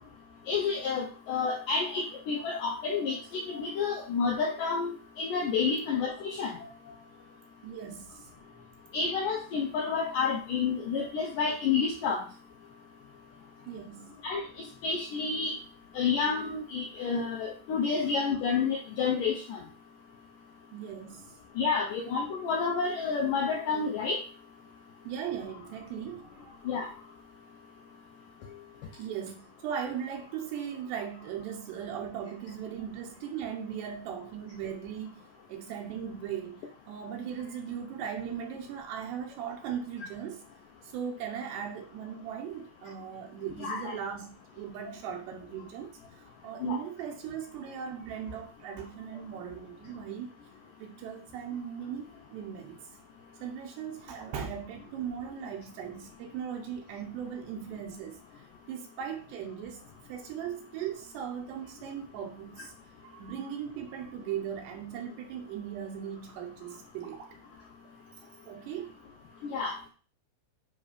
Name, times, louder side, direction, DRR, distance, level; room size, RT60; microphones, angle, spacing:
voice 1, 0.5-6.5 8.9-12.2 14.2-14.4 14.8-15.5 16.0-19.6 21.6-24.2 26.7-26.9 43.6-44.0 46.6-46.8 69.5-69.8, left 5 dB, 80° left, 1.9 m, -29 dB
voice 2, 7.6-8.3 13.6-14.2 20.7-21.3 25.0-26.4 29.0-35.2 35.5-40.4 40.8-50.3 50.8-52.8 53.4-58.2 58.7-59.8 60.1-62.7 63.0-67.4 68.2-68.9, right 8 dB, 75° right, 2.9 m, -38 dB
10.0 x 3.5 x 5.1 m
omnidirectional pair, 5.1 m